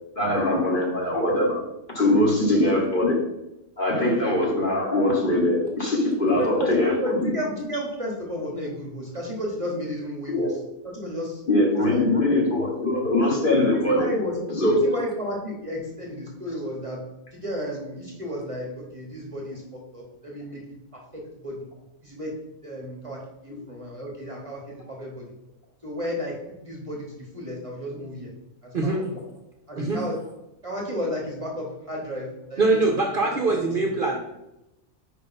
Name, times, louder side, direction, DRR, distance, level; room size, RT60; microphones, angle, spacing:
voice 1, 0.1-1.6 1.9-3.2 3.8-7.2 10.3-10.5 11.5-14.1 14.5-14.8, left 1 dB, 40° left, -2 dB, 1.5 m, -22 dB
voice 2, 6.4-10.5 10.8-11.4 11.9-12.5 13.6-17.0 17.3-20.6 20.9-21.7 22.0-22.3 22.6-25.3 25.8-28.3 28.6-29.2 29.7-30.2 30.6-32.8 33.4-33.9, equal, 25° right, -2 dB, 1.1 m, -33 dB
voice 3, 32.6-34.2, right 3 dB, 50° right, 0 dB, 0.8 m, -23 dB
5.1 x 4.7 x 4.1 m, 0.90 s
omnidirectional pair, 1.4 m